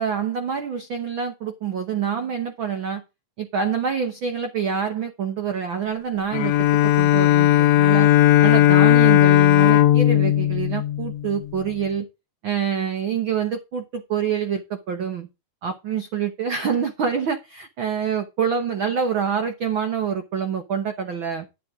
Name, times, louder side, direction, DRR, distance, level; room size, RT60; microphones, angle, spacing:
voice 1, 0.0-3.0 3.4-8.1 8.4-12.1 12.4-15.3 15.6-21.5, right 7 dB, 85° right, 7 dB, 1.0 m, -26 dB
Bowed string instrument, 6.3-11.6, left 13 dB, 75° left, 1.7 m, -16 dB
11.0 x 8.7 x 3.6 m, 0.25 s
omnidirectional pair, 3.8 m